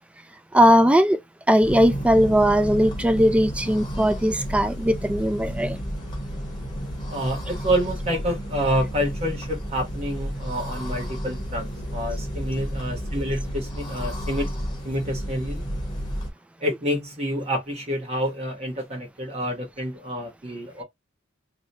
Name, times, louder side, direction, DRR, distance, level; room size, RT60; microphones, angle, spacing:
voice 1, 0.5-1.2 1.5-5.8, equal, 5° right, 0.3 m, -19 dB
sound 1, 1.6-16.3, equal, 20° left, 0.9 m, -32 dB
voice 2, 7.1-14.5 14.8-15.6 16.6-20.8, equal, 35° right, 0.9 m, -28 dB
2.8 x 2.1 x 3.9 m
head